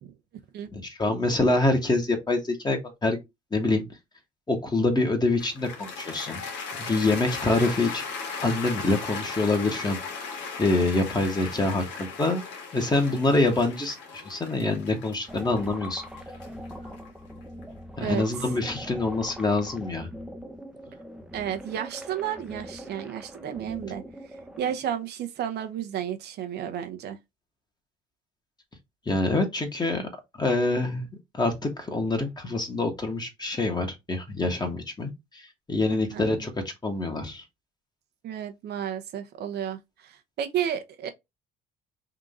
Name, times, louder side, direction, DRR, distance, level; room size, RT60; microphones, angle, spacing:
voice 1, 0.7-3.2 3.5-3.8 4.5-6.4 6.8-8.0 8.4-10.0 10.6-12.4 12.7-16.0 18.0-20.1 29.0-30.1 30.4-31.1 31.3-36.5 36.8-37.4, left 2 dB, 20° left, 1.6 m, -25 dB
Cheering / Applause, 5.4-17.6, left 4 dB, 75° left, 1.6 m, -37 dB
sound 1, 15.3-24.7, equal, 5° right, 0.8 m, -42 dB
voice 2, 21.3-24.0 24.6-27.2 35.9-36.3 38.2-41.1, right 9 dB, 65° right, 0.7 m, -32 dB
3.8 x 2.8 x 3.6 m
supercardioid pair, 80°, 19 cm